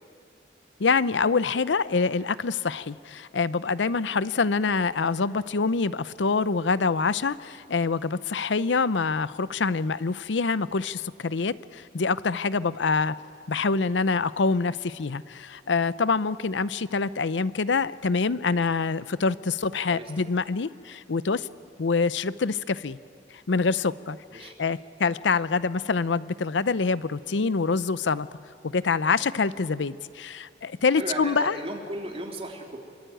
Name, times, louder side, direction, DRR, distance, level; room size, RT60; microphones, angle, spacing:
voice 1, 0.8-13.1 13.5-21.5 21.8-23.0 23.5-28.3 28.6-31.6, left 4 dB, 80° left, 16 dB, 0.6 m, -25 dB
voice 2, 30.9-32.8, right 1 dB, 35° right, 1 dB, 3.6 m, -35 dB
26.0 x 25.0 x 9.2 m, 2.3 s
head